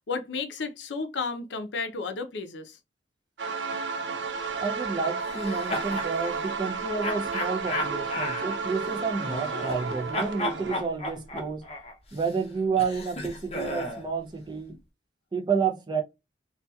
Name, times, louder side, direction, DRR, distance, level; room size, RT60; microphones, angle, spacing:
voice 1, 0.1-2.8, left 4 dB, 90° left, 0.5 m, -33 dB
sound 1, 3.4-10.8, right 4 dB, 85° right, 0.5 m, -32 dB
voice 2, 4.6-11.7 12.1-14.8 15.3-16.0, right 5 dB, 25° right, 0.4 m, -30 dB
sound 2, 5.2-6.1 7.0-9.9 10.1-14.1, left 1 dB, 35° left, 0.6 m, -34 dB
2.7 x 2.2 x 2.2 m
head